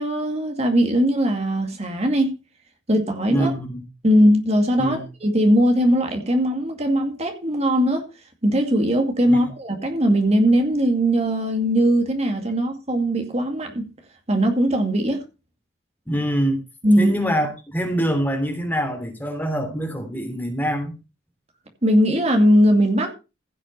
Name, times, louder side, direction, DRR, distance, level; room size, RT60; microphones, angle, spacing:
voice 1, 0.0-2.4 2.9-3.5 4.0-8.0 8.4-13.9 14.3-15.2 16.8-17.1 21.8-23.1, equal, 35° right, 2.3 m, -19 dB
voice 2, 3.3-3.8 4.8-5.0 9.3-9.5 16.1-16.6 17.0-21.0, equal, 10° left, 3.0 m, -25 dB
15.5 x 6.4 x 5.6 m
head